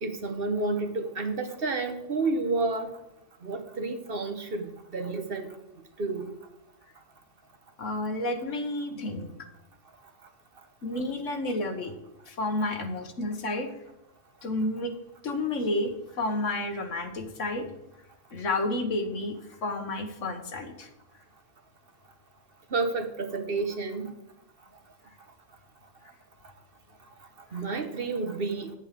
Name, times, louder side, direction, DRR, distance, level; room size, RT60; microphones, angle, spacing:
voice 1, 0.0-3.0 3.4-5.5 6.0-6.3 22.7-24.1 27.5-28.7, right 3 dB, 50° right, 6 dB, 1.2 m, -30 dB
voice 2, 7.8-9.3 10.8-11.9 12.3-13.7 14.4-14.9 15.2-17.7 18.3-20.9, left 2 dB, 75° left, 6 dB, 1.6 m, -31 dB
9.9 x 8.3 x 5.0 m, 0.90 s
omnidirectional pair, 1.3 m